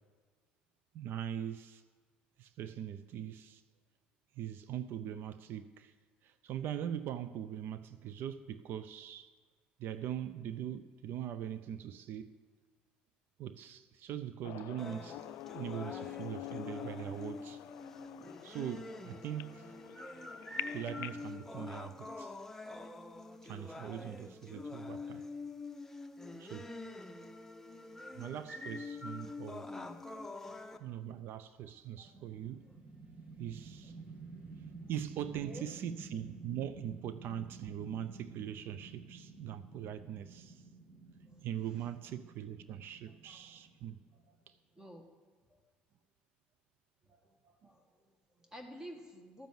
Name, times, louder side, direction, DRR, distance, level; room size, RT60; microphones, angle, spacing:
voice 1, 0.9-1.8 2.4-3.6 4.4-5.9 6.2-9.3 9.8-12.3 13.4-15.2 15.5-17.6 18.4-19.6 20.7-22.3 23.4-25.2 26.4-26.7 28.1-29.7 30.8-32.6 33.4-34.0 34.9-40.6 41.4-44.0 44.5-44.6, right 10 dB, 60° right, 0.6 m, -41 dB
sound 1, 14.4-21.3, left 16 dB, 70° left, 0.3 m, -46 dB
sound 2, 14.8-30.8, left 3 dB, 10° left, 0.9 m, -46 dB
voice 2, 29.6-30.0 30.5-30.6 32.0-32.3 32.7-32.8 35.2-35.7 41.3-41.4 43.0-43.5 44.1-44.4 44.7-45.0 45.5-45.6 47.1-49.5, equal, 15° right, 1.7 m, -53 dB
sound 3, 32.0-44.3, right 4 dB, 40° right, 1.8 m, -51 dB
13.5 x 7.0 x 7.7 m
supercardioid pair, 80°, 4 cm